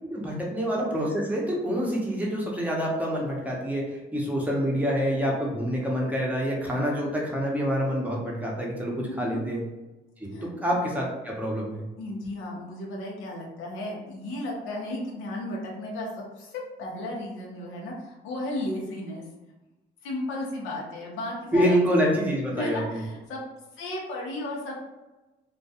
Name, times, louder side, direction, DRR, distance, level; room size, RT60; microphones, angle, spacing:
voice 1, 0.0-9.6 10.2-11.8 21.5-23.0, equal, 10° right, -3 dB, 0.7 m, -27 dB
voice 2, 9.1-9.4 10.3-10.5 12.0-16.1 16.4-19.2 20.0-22.1 22.6-23.4 23.8-24.8, left 1 dB, 90° left, -2 dB, 0.7 m, -34 dB
2.2 x 2.2 x 2.7 m, 1.1 s
cardioid pair, 90°, 20 cm